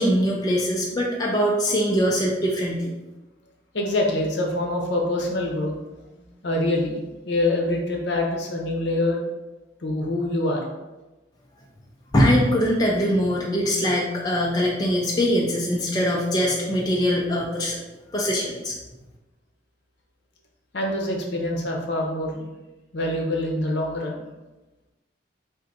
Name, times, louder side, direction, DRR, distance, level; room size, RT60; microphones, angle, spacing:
voice 1, 0.0-2.9 12.1-17.8 18.1-18.8, equal, 20° left, -3 dB, 0.4 m, -22 dB
voice 2, 3.7-5.7 6.2-7.0 7.2-9.2 9.8-10.6 20.7-22.4 22.9-24.2, left 1 dB, 60° left, 0 dB, 0.8 m, -25 dB
3.8 x 2.6 x 4.1 m, 1.1 s
head